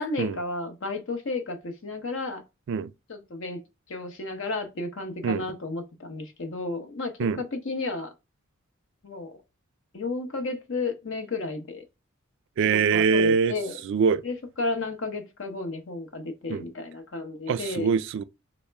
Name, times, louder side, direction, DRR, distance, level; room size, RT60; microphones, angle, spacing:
voice 1, 0.0-2.4 3.1-3.6 3.9-8.1 9.0-9.4 9.9-11.8 12.7-13.8 14.2-17.9, left 3 dB, 65° left, 0.8 m, -32 dB
voice 2, 12.6-13.5 13.8-14.2 16.5-16.7 17.5-18.2, right 5 dB, 60° right, 0.3 m, -23 dB
4.2 x 2.0 x 3.3 m
head